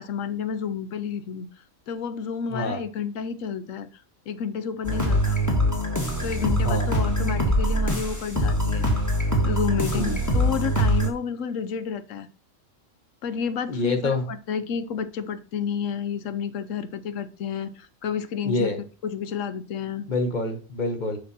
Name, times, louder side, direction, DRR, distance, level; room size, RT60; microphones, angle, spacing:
voice 1, 0.0-1.5 1.9-5.4 6.2-8.9 9.4-12.3 13.2-18.7 19.0-20.1, left 7 dB, 75° left, 12 dB, 1.0 m, -30 dB
sound 1, 4.8-11.1, equal, 15° left, 1.5 m, -23 dB
voice 2, 13.7-14.2 18.4-18.8 20.1-21.2, left 2 dB, 35° left, 6 dB, 1.2 m, -26 dB
6.7 x 5.4 x 4.2 m, 0.35 s
omnidirectional pair, 1.4 m